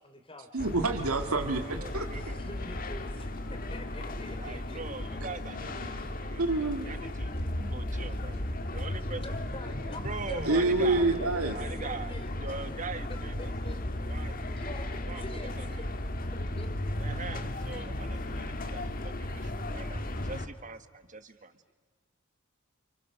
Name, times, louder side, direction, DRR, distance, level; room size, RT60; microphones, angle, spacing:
voice 1, 0.0-0.6 2.1-3.3 3.7-4.8 5.7-6.1 9.2-12.3 13.6-13.8 14.3-15.8 16.6-16.7, left 1 dB, 25° left, 7 dB, 3.4 m, -45 dB
voice 2, 0.5-2.1 6.3-6.9 10.5-11.6, right 2 dB, 90° right, 5 dB, 2.1 m, -27 dB
sound 1, 0.6-20.5, left 1 dB, 40° left, 1.6 m, -35 dB
voice 3, 1.4-2.4 4.3-6.4 6.8-8.4 8.7-9.2 10.0-11.2 11.5-13.8 14.1-14.4 15.1-15.2 15.6-15.9 17.0-21.5, right 4 dB, 35° right, 10 dB, 1.5 m, -42 dB
30.0 x 29.5 x 6.6 m, 1.5 s
head